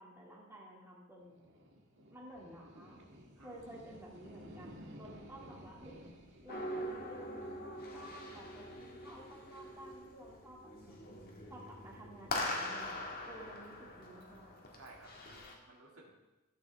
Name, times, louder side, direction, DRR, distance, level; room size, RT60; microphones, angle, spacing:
voice 1, 0.0-1.4 2.1-3.0 3.4-6.0 6.4-11.0 11.5-13.0 13.3-14.6, right 1 dB, 10° right, -4 dB, 2.1 m, -53 dB
sound 1, 1.2-11.6, equal, 60° right, 1.5 m, -56 dB
sound 2, 6.5-15.6, left 1 dB, 45° left, 1.6 m, -43 dB
voice 2, 14.7-16.1, right 2 dB, 75° right, -2 dB, 2.1 m, -57 dB
13.5 x 8.7 x 3.4 m, 1.1 s
head